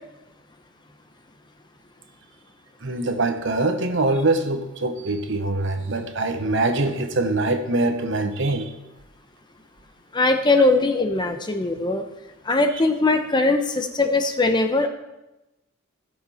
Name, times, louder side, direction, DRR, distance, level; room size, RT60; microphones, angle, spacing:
voice 1, 2.8-8.7, right 2 dB, 60° right, 7 dB, 1.0 m, -23 dB
voice 2, 10.1-12.0 12.4-14.9, left 2 dB, 20° left, 6 dB, 0.8 m, -20 dB
16.5 x 6.9 x 4.3 m, 0.98 s
head